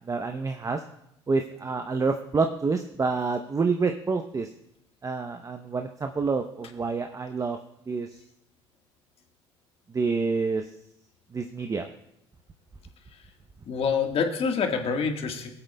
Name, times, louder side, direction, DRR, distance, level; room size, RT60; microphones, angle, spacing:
voice 1, 0.1-0.8 1.3-4.5 5.0-7.6 7.9-8.1 9.9-10.7 11.3-11.9, right 4 dB, 25° right, 6 dB, 0.7 m, -27 dB
voice 2, 13.7-15.5, left 5 dB, 45° left, 4 dB, 1.5 m, -26 dB
19.5 x 8.1 x 2.2 m, 0.80 s
hypercardioid pair, 65°, 13 cm